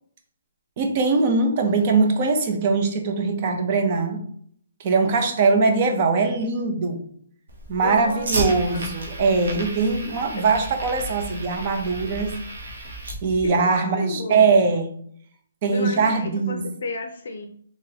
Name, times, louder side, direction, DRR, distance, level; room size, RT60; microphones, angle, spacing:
voice 1, 0.8-4.2 4.8-7.0 7.7-12.3 13.2-14.9 15.6-16.6, right 4 dB, 25° right, 5 dB, 0.5 m, -21 dB
Fire, 7.5-13.5, right 1 dB, 80° right, 1.1 m, -33 dB
voice 2, 7.8-9.0 13.4-14.4 15.7-17.5, left 3 dB, 55° left, 4 dB, 0.5 m, -32 dB
3.9 x 3.0 x 2.8 m, 0.62 s
hypercardioid pair, 170°, 0 cm